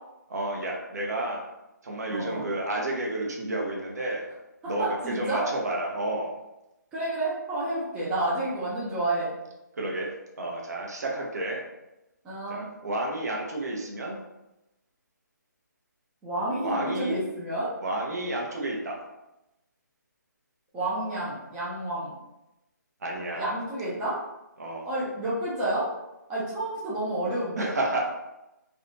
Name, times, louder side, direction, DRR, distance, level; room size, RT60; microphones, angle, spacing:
voice 1, 0.3-1.4 1.8-4.2 4.7-6.3 9.8-10.1 10.4-11.6 12.5-14.2 16.6-17.2 17.8-19.0 23.0-23.4 24.6-24.9 27.6-28.0, right 1 dB, 60° right, -1 dB, 0.7 m, -31 dB
voice 2, 2.1-2.4 4.8-5.5 6.9-9.3 12.2-12.6 16.2-17.7 20.7-22.1 23.4-24.2 24.8-25.9 26.3-27.7, right 1 dB, 10° right, -8 dB, 0.4 m, -30 dB
2.6 x 2.2 x 2.7 m, 0.94 s
figure-of-eight pair, 155°, 10 cm